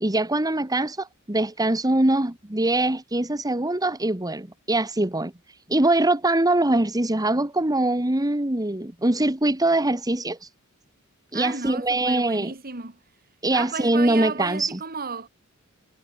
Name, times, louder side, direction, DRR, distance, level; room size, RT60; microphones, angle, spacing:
voice 1, 0.0-5.3 5.7-10.5 11.3-12.5 13.4-14.8, right 2 dB, 15° right, 1.6 m, -23 dB
voice 2, 11.3-13.0 13.5-15.3, right 4 dB, 45° right, 2.8 m, -33 dB
head